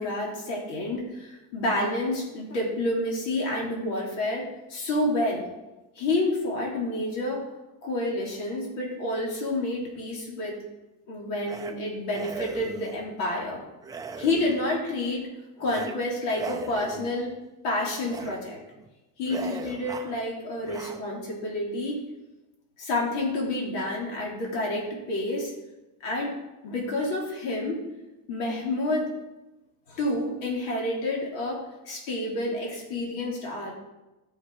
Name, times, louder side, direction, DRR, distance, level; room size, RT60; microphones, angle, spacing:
voice 1, 0.0-5.5 5.9-7.4 7.8-10.5 11.1-13.6 14.2-15.3 15.6-17.4 17.6-18.6 19.2-22.0 22.8-25.5 26.0-26.4 26.6-27.8 28.3-29.1 29.9-31.6 31.8-33.7, left 1 dB, 85° left, -3 dB, 3.5 m, -29 dB
sound 1, 11.5-11.7 12.1-13.0 13.8-14.8 15.6-15.9 16.3-17.2 18.0-18.3 18.7-18.9 19.3-20.2 20.6-21.0, right 4 dB, 10° right, 0.4 m, -38 dB
14.0 x 6.4 x 4.8 m, 1.0 s
cardioid pair, 170°, 39 cm